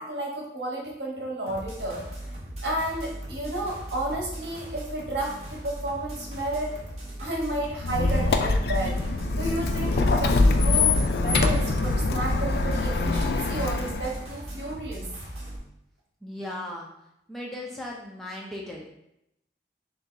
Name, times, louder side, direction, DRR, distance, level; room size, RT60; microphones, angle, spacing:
voice 1, 0.0-2.1 2.6-6.8 7.2-9.0 9.3-15.1, right 1 dB, 75° right, -1 dB, 1.0 m, -32 dB
sound 1, 1.5-15.6, right 1 dB, 40° right, 0.8 m, -39 dB
Squeak, 7.8-14.2, left 3 dB, 65° left, 0.3 m, -24 dB
voice 2, 16.2-16.9 17.3-18.9, left 1 dB, ahead, -3 dB, 0.4 m, -37 dB
3.3 x 2.7 x 3.8 m, 0.81 s
head